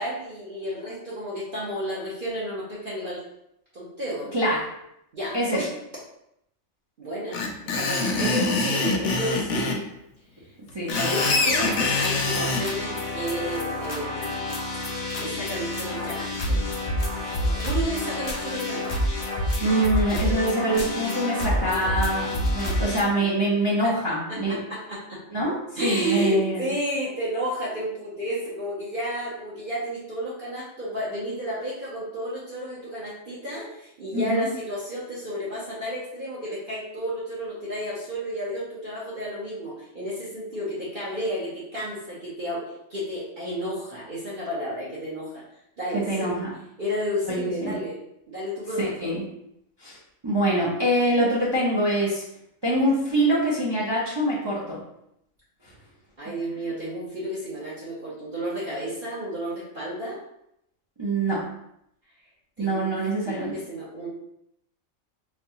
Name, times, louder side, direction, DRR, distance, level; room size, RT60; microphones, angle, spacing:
voice 1, 0.0-3.2 3.7-4.3 5.1-5.7 7.0-7.4 7.7-9.8 11.0-14.4 15.2-16.6 17.4-18.8 23.8-23.9 24.5-25.2 25.8-42.6 42.9-45.4 45.8-46.3 46.8-48.0 48.3-49.1 56.2-60.2 62.6-62.9 63.3-64.1, equal, 45° right, -9 dB, 1.0 m, -31 dB
voice 2, 4.3-4.7 5.3-5.6 8.2-8.4 10.7-11.0 19.6-24.6 25.3-26.7 34.1-34.5 45.9-46.5 47.3-47.8 48.8-49.3 49.8-50.0 50.2-52.2 52.6-54.8 61.0-61.4 62.6-63.5, right 1 dB, 25° right, -7 dB, 0.6 m, -24 dB
Screech, 7.3-9.8 10.7-12.6, left 3 dB, 80° left, 1.0 m, -24 dB
sound 1, 10.9-23.0, left 1 dB, 50° left, 0.6 m, -28 dB
4.4 x 2.3 x 2.8 m, 0.78 s
omnidirectional pair, 1.4 m